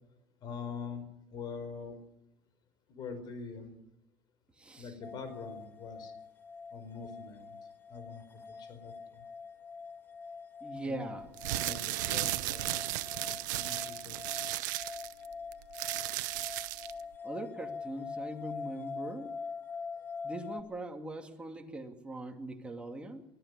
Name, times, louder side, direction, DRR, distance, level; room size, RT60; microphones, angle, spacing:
voice 1, 0.4-1.0 1.3-2.0 2.9-3.7 4.8-6.1 6.7-7.5 7.9-8.2 8.6-9.2 10.8-11.2 11.6-12.7 13.2-14.2, left 5 dB, 45° left, 10 dB, 5.0 m, -44 dB
voice 2, 4.6-4.9 10.6-11.3 17.2-19.3 20.2-23.2, right 2 dB, 10° right, 3 dB, 2.7 m, -41 dB
sound 1, 5.0-20.6, left 5 dB, 20° left, 2.1 m, -44 dB
sound 2, 11.3-17.0, right 18 dB, 90° right, 0.9 m, -35 dB
21.5 x 12.5 x 9.8 m, 0.86 s
supercardioid pair, 120°, 10 cm